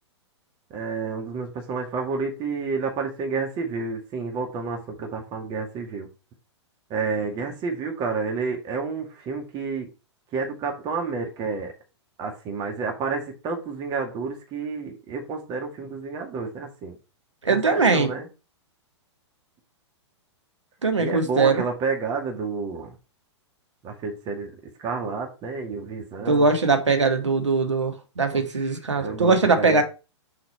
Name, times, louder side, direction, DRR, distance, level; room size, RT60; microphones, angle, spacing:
voice 1, 0.7-6.1 6.9-9.9 10.3-11.7 12.2-17.0 17.5-18.3 21.0-22.9 23.8-24.5 24.8-26.5 28.3-28.4 28.9-29.8, right 4 dB, 30° right, 1.9 m, -30 dB
voice 2, 17.4-18.1 20.8-21.6 26.2-29.8, right 4 dB, 80° right, 1.5 m, -21 dB
6.3 x 4.8 x 4.5 m
figure-of-eight pair, 110°, 15 cm